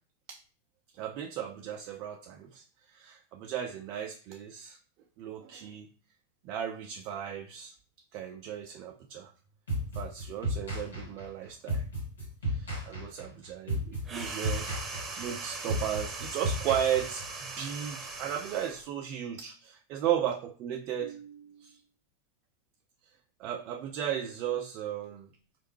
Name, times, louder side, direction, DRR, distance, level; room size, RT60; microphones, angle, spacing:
voice 1, 0.9-4.8 5.2-5.9 6.4-7.8 8.1-9.3 10.0-11.8 12.4-14.7 15.2-21.8 23.4-25.3, right 10 dB, 40° right, 5 dB, 0.3 m, -35 dB
sound 1, 9.7-17.5, equal, 70° left, 2.0 m, -34 dB
sound 2, 14.0-18.9, right 4 dB, 20° right, 1.0 m, -40 dB
4.4 x 3.2 x 3.0 m, 0.43 s
figure-of-eight pair, 90°, 0 cm